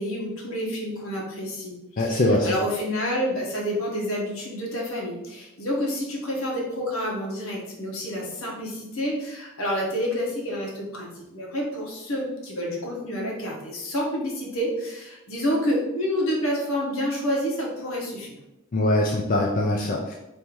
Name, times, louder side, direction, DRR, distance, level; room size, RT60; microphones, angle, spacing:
voice 1, 0.0-18.4, equal, 80° left, -2 dB, 1.3 m, -29 dB
voice 2, 2.0-2.6 18.7-20.1, left 1 dB, 40° left, -2 dB, 0.4 m, -22 dB
3.4 x 2.7 x 4.6 m, 0.91 s
head